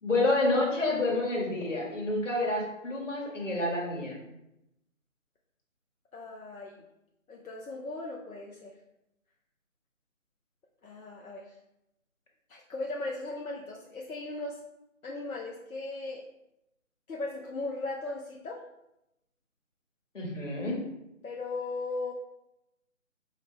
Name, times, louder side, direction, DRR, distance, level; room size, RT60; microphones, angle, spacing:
voice 1, 0.0-4.2 20.1-20.8, left 2 dB, 60° left, -1 dB, 1.3 m, -28 dB
voice 2, 6.1-6.8 7.3-8.7 10.8-11.6 12.5-14.6 15.0-16.3 17.1-18.6 21.2-22.1, left 2 dB, 80° left, -1 dB, 0.7 m, -37 dB
4.8 x 2.1 x 3.2 m, 0.87 s
figure-of-eight pair, 155°, 41 cm